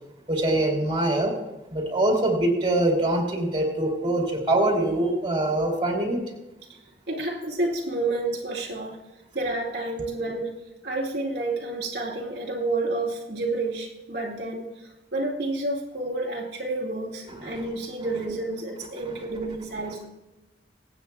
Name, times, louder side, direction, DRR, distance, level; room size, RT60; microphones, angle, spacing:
voice 1, 0.3-1.3 1.7-6.2 17.4-17.6 19.1-19.2, right 1 dB, 30° right, -1 dB, 3.5 m, -24 dB
voice 2, 7.1-9.0 9.3-10.6 10.8-20.1, right 2 dB, 70° right, -3 dB, 2.3 m, -30 dB
24.0 x 8.9 x 2.4 m, 0.98 s
head